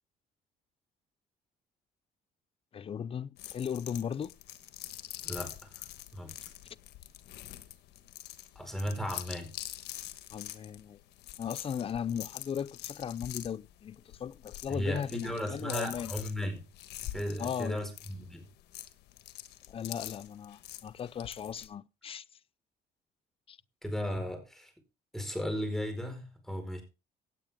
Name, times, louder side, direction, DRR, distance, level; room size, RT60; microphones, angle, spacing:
voice 1, 2.7-4.3 10.3-11.0 11.4-16.1 17.4-17.8 19.7-22.2 23.5-23.6, left 8 dB, 35° left, 0.5 m, -37 dB
sound 1, 3.4-21.7, left 14 dB, 80° left, 1.4 m, -45 dB
voice 2, 5.2-5.8 6.1-6.3 8.5-9.5 14.7-16.6 17.0-18.5 23.8-24.7 25.1-26.8, equal, ahead, 4.9 m, -36 dB
17.0 x 8.6 x 3.6 m
cardioid pair, 110°, 17 cm